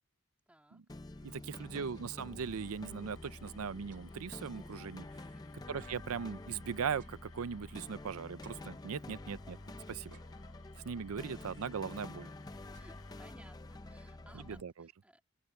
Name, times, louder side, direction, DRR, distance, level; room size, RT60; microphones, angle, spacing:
voice 1, 0.5-0.8 1.2-2.3 5.3-5.6 12.0-12.4 12.7-15.2, right 1 dB, 5° right, 2.3 m, -62 dB
sound 1, 0.9-14.6, left 2 dB, 20° left, 0.5 m, -48 dB
sound 2, 1.1-2.4 2.7-2.8 3.1-5.3 5.8-8.0 8.4-9.5 10.0-10.9 11.5-12.0 12.3-13.5, right 6 dB, 55° right, 3.2 m, -68 dB
voice 2, 1.2-5.1 5.7-9.6 9.9-10.2 10.8-12.3 14.6-14.7, right 6 dB, 80° right, 0.5 m, -39 dB
sound 3, 2.7-13.3, left 5 dB, 70° left, 6.0 m, -64 dB
open air
head